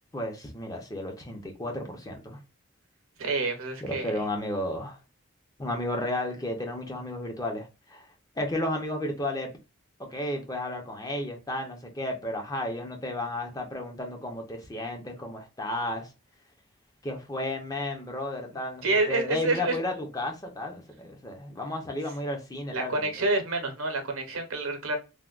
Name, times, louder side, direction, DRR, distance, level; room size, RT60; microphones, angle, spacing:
voice 1, 0.1-2.4 3.8-5.0 5.6-8.1 8.4-9.5 10.0-16.1 17.0-23.1, left 1 dB, 15° left, 0.5 m, -33 dB
voice 2, 3.2-4.1 18.8-19.8 22.7-25.0, right 2 dB, 75° right, 0.8 m, -28 dB
3.3 x 2.2 x 2.3 m
head